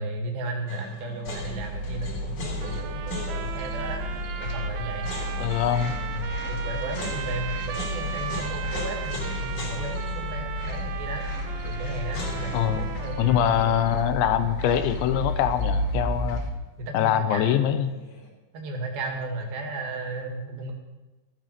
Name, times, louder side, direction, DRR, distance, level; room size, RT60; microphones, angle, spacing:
voice 1, 0.0-4.1 4.4-5.1 6.1-11.3 11.6-13.9 16.8-17.9 18.5-20.7, right 2 dB, 55° right, 2 dB, 3.5 m, -34 dB
sound 1, 0.7-15.7 15.9-16.0 17.8-18.3, left 1 dB, 35° left, 3.9 m, -41 dB
sound 2, 1.3-16.5, left 1 dB, 60° left, 3.2 m, -32 dB
sound 3, 2.6-14.2, right 9 dB, 85° right, 2.1 m, -38 dB
voice 2, 5.4-5.9 12.5-12.9 13.2-16.4 16.9-17.9, left 10 dB, 85° left, 10 dB, 2.7 m, -23 dB
14.5 x 9.9 x 6.7 m, 1.1 s
omnidirectional pair, 5.8 m